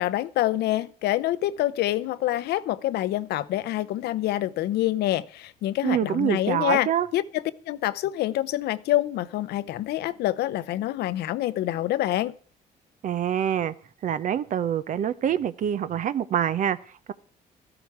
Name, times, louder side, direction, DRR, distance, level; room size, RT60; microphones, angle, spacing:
voice 1, 0.0-6.9 7.1-12.3, left 14 dB, 75° left, 0.7 m, -26 dB
voice 2, 5.8-7.1 13.0-13.7 14.0-17.1, right 9 dB, 50° right, 0.6 m, -26 dB
13.5 x 12.0 x 4.8 m
cardioid pair, 110°, 17 cm